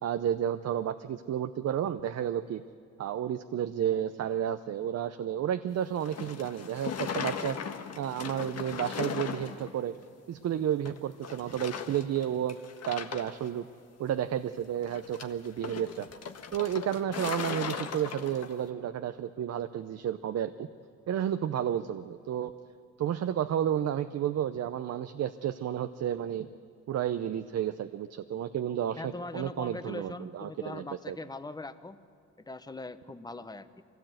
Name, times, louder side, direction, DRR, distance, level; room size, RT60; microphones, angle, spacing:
voice 1, 0.0-2.6 3.0-7.6 8.0-9.9 10.3-12.6 12.9-13.7 14.0-16.1 16.5-20.7 21.1-22.5 23.0-26.5 26.9-31.2, right 10 dB, 60° right, 10 dB, 0.7 m, -31 dB
sound 1, 6.0-9.7 10.0-10.1 10.9-11.0 11.2-12.2 12.5-13.5 14.8-18.6, left 7 dB, 55° left, 1.5 m, -37 dB
voice 2, 29.0-32.0 32.4-33.8, left 2 dB, 15° left, 11 dB, 0.9 m, -41 dB
23.5 x 16.5 x 7.9 m, 2.4 s
cardioid pair, 90°, 30 cm